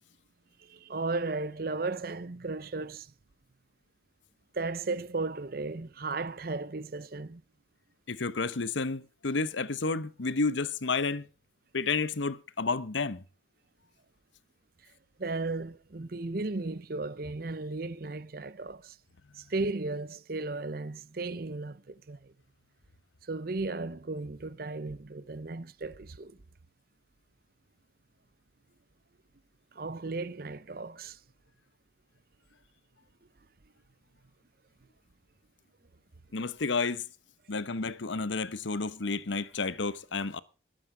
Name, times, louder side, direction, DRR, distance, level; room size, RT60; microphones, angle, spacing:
voice 1, 0.6-3.1 4.5-7.4 15.2-19.0 19.4-22.3 23.3-26.4 29.8-31.2, right 3 dB, 50° right, 0.7 m, -35 dB
voice 2, 8.1-11.3 11.7-13.2 36.3-37.0 37.5-40.4, left 4 dB, 75° left, 0.9 m, -31 dB
20.0 x 8.8 x 5.0 m
head